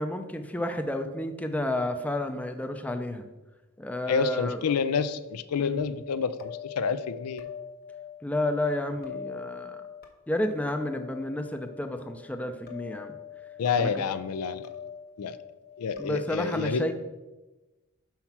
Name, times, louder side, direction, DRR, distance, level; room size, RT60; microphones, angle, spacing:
voice 1, 0.0-3.3 3.8-4.6 5.6-5.8 8.2-9.8 10.3-13.1 13.7-13.9 16.0-16.9, left 1 dB, 5° left, 6 dB, 0.4 m, -31 dB
voice 2, 4.1-7.4 13.6-14.7 15.2-15.4 15.8-16.9, left 6 dB, 85° left, 13 dB, 0.4 m, -28 dB
sound 1, 5.8-16.3, left 9 dB, 45° left, 1.0 m, -43 dB
5.8 x 4.4 x 5.8 m, 1.1 s
head